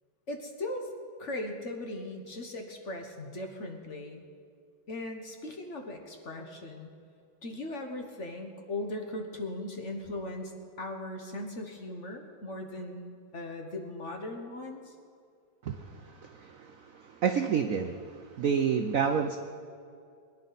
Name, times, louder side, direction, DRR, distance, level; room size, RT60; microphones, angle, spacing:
voice 1, 0.3-0.9 1.2-4.2 4.9-6.9 7.4-10.5 10.8-14.9, left 1 dB, 40° left, 3 dB, 1.3 m, -38 dB
voice 2, 15.6-19.4, right 7 dB, 70° right, 6 dB, 0.8 m, -30 dB
22.5 x 10.5 x 4.1 m, 2.3 s
omnidirectional pair, 2.2 m